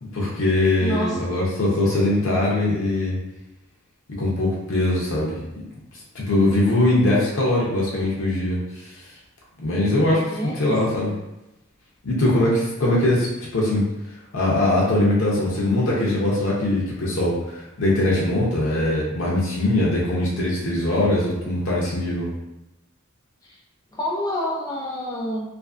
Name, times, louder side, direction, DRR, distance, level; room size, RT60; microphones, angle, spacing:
voice 1, 0.0-3.2 4.1-5.4 6.1-8.6 9.6-10.3 10.6-11.1 12.0-13.8 14.3-22.3, left 1 dB, 70° left, -5 dB, 0.6 m, -21 dB
voice 2, 0.8-1.2 10.3-11.1 23.9-25.4, equal, 20° left, -3 dB, 0.5 m, -28 dB
2.5 x 2.4 x 2.4 m, 0.92 s
head